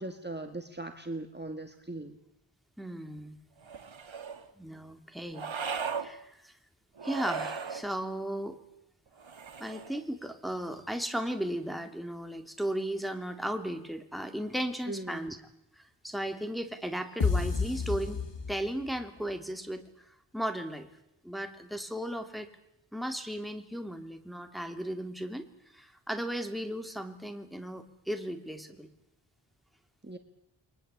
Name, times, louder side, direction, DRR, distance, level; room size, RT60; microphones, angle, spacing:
voice 1, 0.0-2.2 14.9-15.3 30.0-30.2, right 2 dB, 20° right, 6 dB, 2.1 m, -39 dB
voice 2, 2.8-3.4 4.6-5.5 6.0-6.5 7.0-8.6 9.6-15.4 15.8-19.8 20.3-20.9 21.2-22.5 22.9-25.5 25.7-28.9, right 1 dB, ahead, 6 dB, 3.1 m, -36 dB
sound 1, 3.6-4.4 5.3-6.1 7.0-7.8 9.2-10.0, right 6 dB, 85° right, 1.8 m, -37 dB
sound 2, 17.2-19.0, left 4 dB, 70° left, 2.4 m, -30 dB
29.5 x 23.0 x 8.5 m, 0.84 s
wide cardioid pair, 65°, 45 cm